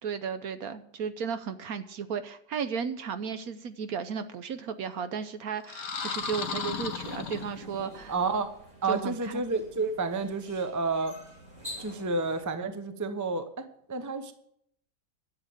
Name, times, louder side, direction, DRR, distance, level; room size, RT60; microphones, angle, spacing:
voice 1, 0.0-8.1 8.9-9.4, right 6 dB, 65° right, 11 dB, 1.1 m, -34 dB
sound 1, 5.6-7.9, left 5 dB, 80° left, 1.8 m, -35 dB
sound 2, 6.7-12.5, equal, 45° right, 4.9 m, -48 dB
voice 2, 8.1-8.5 8.8-11.2 11.8-14.3, right 3 dB, 15° right, 8 dB, 0.6 m, -30 dB
11.5 x 7.4 x 7.8 m, 0.69 s
omnidirectional pair, 1.8 m